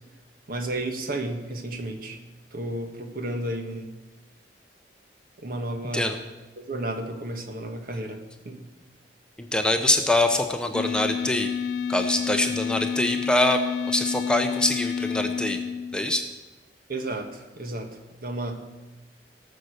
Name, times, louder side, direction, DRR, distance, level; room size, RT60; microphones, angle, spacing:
voice 1, 0.5-2.2 2.5-3.9 5.4-6.1 6.6-8.7 16.9-18.6, right 1 dB, 55° right, 5 dB, 1.5 m, -32 dB
voice 2, 9.4-11.5 11.9-13.6 13.9-15.6 15.9-16.2, left 1 dB, 5° left, 5 dB, 0.7 m, -24 dB
sound 1, 10.7-16.3, left 7 dB, 65° left, 0.4 m, -29 dB
18.0 x 6.8 x 6.5 m, 1.2 s
head